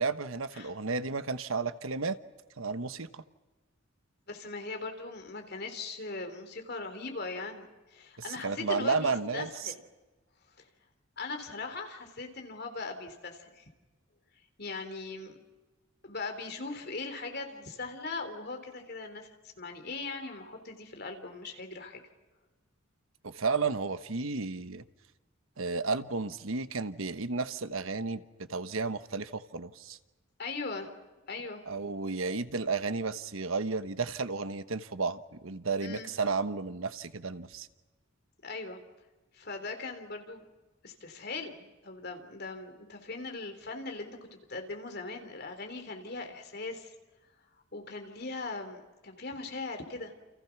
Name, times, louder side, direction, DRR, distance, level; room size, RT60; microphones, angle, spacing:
voice 1, 0.0-2.2 2.6-3.2 8.2-9.7 23.2-24.8 25.6-28.2 28.5-30.0 31.7-37.7, right 4 dB, 90° right, 1.2 m, -32 dB
voice 2, 4.3-9.8 10.6-10.7 11.2-13.7 14.6-15.4 16.0-19.3 19.6-22.0 30.4-30.9 31.3-31.6 35.8-36.1 38.4-38.8 39.3-40.4 40.8-46.9 47.7-50.1, left 3 dB, 50° left, 3.5 m, -40 dB
29.5 x 28.5 x 6.0 m
head